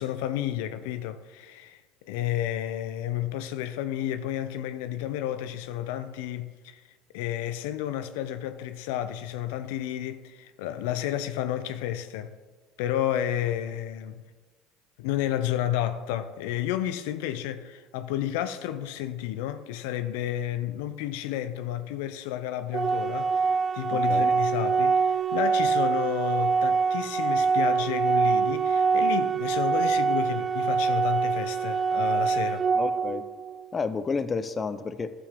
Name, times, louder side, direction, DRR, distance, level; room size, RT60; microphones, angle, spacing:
voice 1, 0.0-6.8 7.1-12.3 12.8-14.2 15.0-32.6, left 12 dB, 80° left, 0.4 m, -31 dB
Organ, 22.7-33.7, right 5 dB, 35° right, 0.4 m, -24 dB
voice 2, 32.7-33.2 33.7-35.1, left 4 dB, 30° left, 0.6 m, -30 dB
12.5 x 6.9 x 3.6 m
hypercardioid pair, 80°, 0 cm